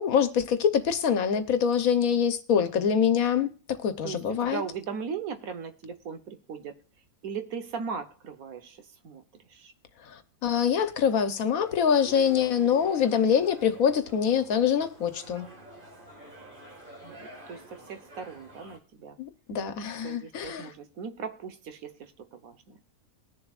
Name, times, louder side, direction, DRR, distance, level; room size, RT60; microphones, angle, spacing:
voice 1, 0.0-3.5 3.8-4.6 10.1-15.5 19.2-20.7, left 7 dB, 85° left, 1.4 m, -25 dB
voice 2, 4.0-6.8 7.2-9.2 9.5-9.7 17.0-19.2 19.9-22.8, right 6 dB, 85° right, 1.5 m, -38 dB
sound 1, 11.6-18.8, right 2 dB, 40° right, 2.1 m, -48 dB
21.0 x 7.0 x 2.4 m
omnidirectional pair, 1.4 m